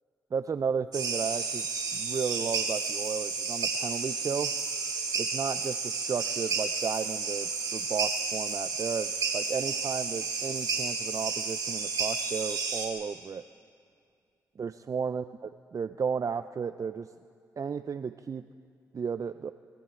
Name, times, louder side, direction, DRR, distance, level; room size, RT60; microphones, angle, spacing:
voice 1, 0.3-1.7 1.9-4.5 5.2-13.4 14.6-15.2 15.7-17.1 17.6-18.4 18.9-19.5, right 6 dB, 50° right, 11 dB, 0.6 m, -33 dB
sound 1, 0.9-12.9, right 4 dB, 65° right, 3.4 m, -32 dB
26.0 x 22.0 x 4.6 m, 2.2 s
supercardioid pair, 45°, 7 cm